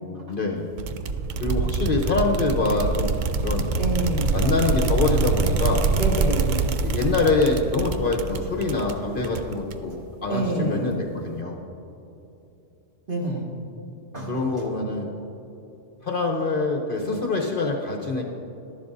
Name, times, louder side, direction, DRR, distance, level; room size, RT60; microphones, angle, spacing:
voice 1, 0.0-0.7 1.4-3.1 3.4-3.7 4.3-5.8 6.8-11.6 14.3-15.1 16.0-18.2, left 3 dB, 45° left, 1 dB, 0.9 m, -25 dB
sound 1, 0.8-10.0, right 4 dB, 65° right, 0.4 m, -25 dB
voice 2, 3.8-4.4 5.9-6.8 10.3-10.8 13.1-13.5 14.1-14.6, right 1 dB, 40° right, -3 dB, 2.0 m, -27 dB
12.5 x 11.0 x 2.6 m, 2.9 s
omnidirectional pair, 1.4 m